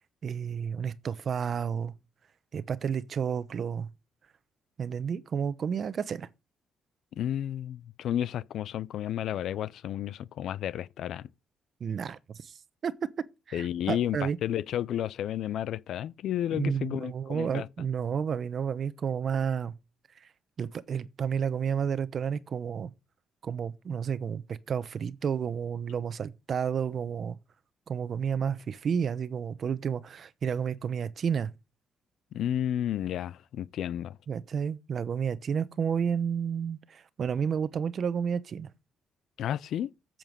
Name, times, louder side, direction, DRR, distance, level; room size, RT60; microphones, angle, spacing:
voice 1, 0.2-1.9 2.5-3.9 4.8-6.3 11.8-12.5 12.8-12.9 13.5-14.4 16.5-19.7 20.6-22.9 23.4-27.4 27.9-31.5 34.3-38.7, right 7 dB, 55° right, 0.9 m, -31 dB
voice 2, 7.1-11.3 13.5-17.7 32.3-34.2 39.4-39.9, left 11 dB, 75° left, 0.6 m, -32 dB
8.9 x 7.7 x 6.5 m
cardioid pair, 90°, 0 cm